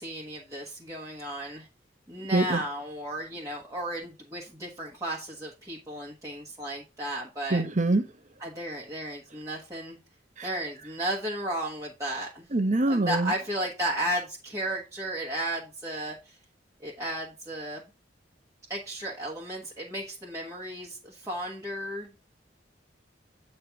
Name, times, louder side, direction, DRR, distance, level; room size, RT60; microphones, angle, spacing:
voice 1, 0.0-1.6 2.1-7.6 8.4-10.0 10.4-12.5 12.9-16.3 16.8-17.8 18.7-22.2, right 1 dB, 15° right, 1.3 m, -34 dB
voice 2, 7.5-8.0 12.5-13.3, right 2 dB, 45° right, 1.0 m, -24 dB
8.7 x 3.3 x 5.7 m
head